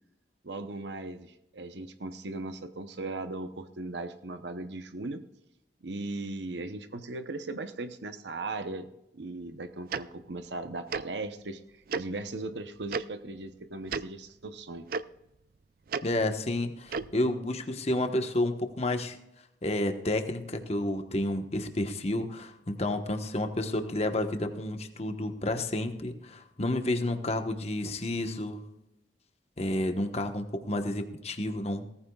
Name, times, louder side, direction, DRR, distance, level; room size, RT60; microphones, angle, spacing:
voice 1, 0.4-5.2 5.8-14.9, right 2 dB, 75° right, 9 dB, 0.9 m, -38 dB
Tick-tock, 9.9-10.0 10.9-11.0 11.9-12.0 12.9-13.0 13.9-14.0 14.9-15.0 15.9-16.0 16.9-17.1, right 5 dB, 55° right, 0.4 m, -31 dB
voice 2, 16.0-19.2 19.6-28.6 29.6-31.8, left 1 dB, 35° left, 6 dB, 1.2 m, -30 dB
18.0 x 14.5 x 2.4 m, 0.87 s
head